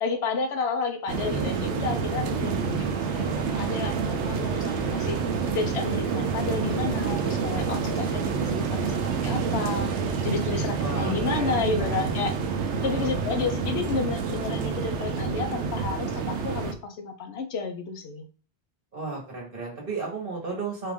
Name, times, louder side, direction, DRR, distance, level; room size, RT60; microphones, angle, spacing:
voice 1, 0.0-5.2 5.5-9.9 10.2-12.4 12.8-18.2, left 4 dB, 70° left, 6 dB, 0.9 m, -31 dB
sound 1, 1.1-16.7, right 5 dB, 85° right, 0.9 m, -28 dB
voice 2, 10.8-12.0 12.8-13.1 18.9-20.9, right 3 dB, 50° right, -2 dB, 1.4 m, -34 dB
4.3 x 2.5 x 3.5 m, 0.38 s
omnidirectional pair, 1.2 m